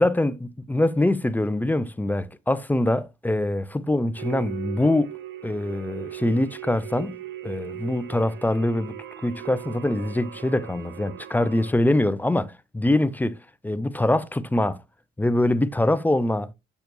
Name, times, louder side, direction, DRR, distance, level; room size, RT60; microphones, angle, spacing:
voice 1, 0.0-5.1 5.4-9.0 9.2-13.4 13.6-14.8 15.2-16.5, left 1 dB, 10° left, 0.5 m, -24 dB
sound 1, 4.2-11.7, right 13 dB, 80° right, 0.7 m, -38 dB
6.8 x 5.9 x 2.6 m
cardioid pair, 90°, 20 cm